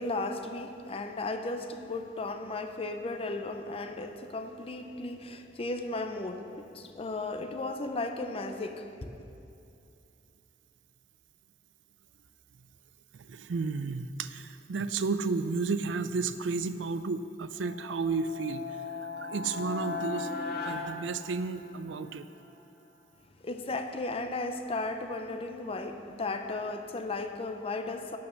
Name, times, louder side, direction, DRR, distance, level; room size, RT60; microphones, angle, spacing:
voice 1, 0.0-9.1 23.4-28.2, left 2 dB, 35° left, 0.6 m, -35 dB
voice 2, 13.1-18.6 19.2-20.3 20.6-22.3, right 4 dB, 90° right, 0.4 m, -32 dB
sound 1, 17.5-21.9, left 4 dB, 60° left, 1.4 m, -37 dB
9.2 x 8.5 x 6.3 m
head